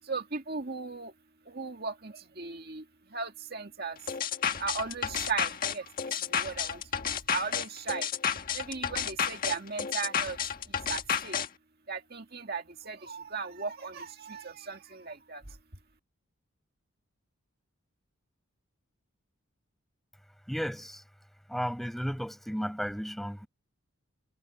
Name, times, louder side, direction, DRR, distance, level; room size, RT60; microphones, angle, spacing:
voice 1, 0.0-1.1 1.5-2.8 3.1-4.0 4.6-7.0 7.3-8.1 8.5-10.4 10.7-11.4 11.9-15.6, right 4 dB, 45° right, 2.0 m, -37 dB
sound 1, 4.1-11.5, left 7 dB, 40° left, 1.7 m, -31 dB
voice 2, 20.5-21.0 21.5-23.5, equal, ahead, 5.7 m, -34 dB
head